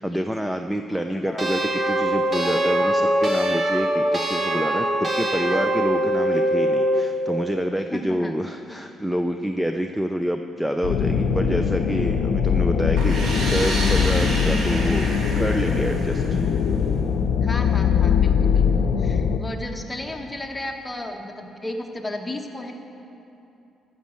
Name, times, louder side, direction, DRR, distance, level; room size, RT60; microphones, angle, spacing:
voice 1, 0.0-1.6 1.9-15.1 15.4-16.4, equal, 5° right, 6 dB, 0.5 m, -27 dB
voice 2, 1.1-1.5 7.9-8.3 17.4-22.7, left 1 dB, 15° left, 2 dB, 1.3 m, -34 dB
sound 1, 1.4-7.1, right 1 dB, 35° right, 1.5 m, -22 dB
sound 2, 10.8-19.4, left 6 dB, 75° left, 0.6 m, -21 dB
sound 3, 13.0-16.7, right 1 dB, 70° right, 2.3 m, -29 dB
13.0 x 6.3 x 7.7 m, 2.8 s
cardioid pair, 90°, 0 cm